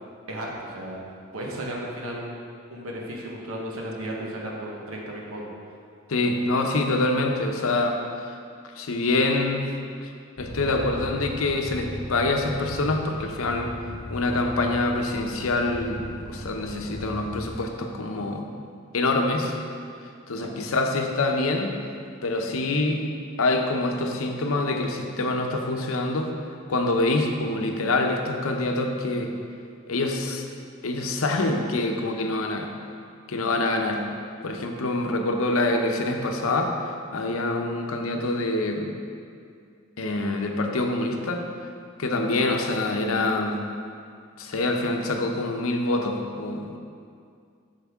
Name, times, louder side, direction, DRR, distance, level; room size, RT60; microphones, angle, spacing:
voice 1, 0.3-1.0 1.3-5.5 20.4-20.5, right 1 dB, 80° right, -2 dB, 1.1 m, -34 dB
voice 2, 6.1-8.0 8.7-9.7 10.0-10.1 10.4-13.7 14.1-18.5 18.9-19.5 20.3-21.8 22.2-23.0 23.4-26.3 26.7-29.3 29.9-30.4 30.8-32.7 33.3-34.0 34.4-38.9 40.0-41.5 42.0-43.6 44.4-46.8, left 2 dB, 75° left, 3 dB, 0.7 m, -25 dB
sound 1, 10.4-17.6, left 1 dB, 35° left, 0.9 m, -38 dB
8.0 x 6.6 x 3.6 m, 2.3 s
head